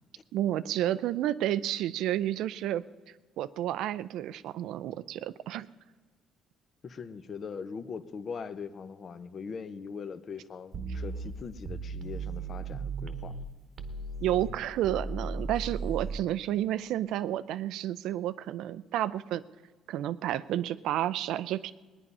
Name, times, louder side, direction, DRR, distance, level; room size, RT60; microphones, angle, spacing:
voice 1, 0.3-2.8 3.4-5.7 10.9-11.0 14.2-19.4 19.9-21.7, right 12 dB, 80° right, 15 dB, 0.4 m, -31 dB
voice 2, 6.8-13.4, left 5 dB, 40° left, 14 dB, 0.7 m, -41 dB
sound 1, 10.7-13.5 13.8-16.2, right 3 dB, 40° right, 1.0 m, -36 dB
19.0 x 9.8 x 5.4 m, 1.4 s
cardioid pair, 130°, 0 cm